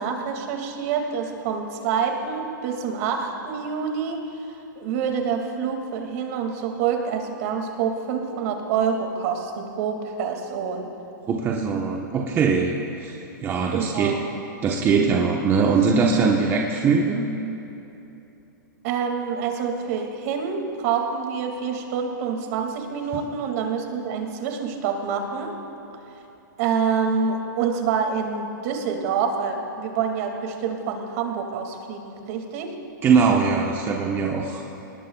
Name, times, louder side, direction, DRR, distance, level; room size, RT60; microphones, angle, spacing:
voice 1, 0.0-4.4 4.8-10.9 13.7-14.3 18.8-25.5 26.6-32.7, right 6 dB, 50° right, 3 dB, 2.3 m, -27 dB
voice 2, 11.3-14.2 14.6-17.3 33.0-34.6, right 5 dB, 20° right, 0 dB, 1.1 m, -21 dB
26.0 x 19.5 x 2.4 m, 3.0 s
hypercardioid pair, 135°, 11 cm